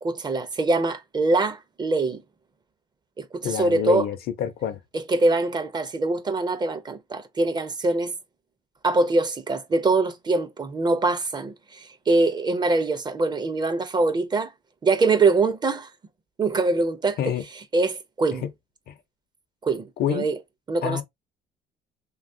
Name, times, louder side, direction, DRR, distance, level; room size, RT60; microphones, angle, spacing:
voice 1, 0.0-2.2 3.2-4.1 4.9-8.1 8.8-14.5 14.8-15.9 16.4-17.2 17.7-18.5 19.6-20.3 20.7-21.0, right 3 dB, 25° right, 0.5 m, -23 dB
voice 2, 3.4-4.8 17.2-17.4 18.4-18.5 18.9-19.0 20.0-20.3 20.8-21.0, left 9 dB, 65° left, 0.6 m, -27 dB
3.1 x 2.3 x 2.5 m
cardioid pair, 110°, 17 cm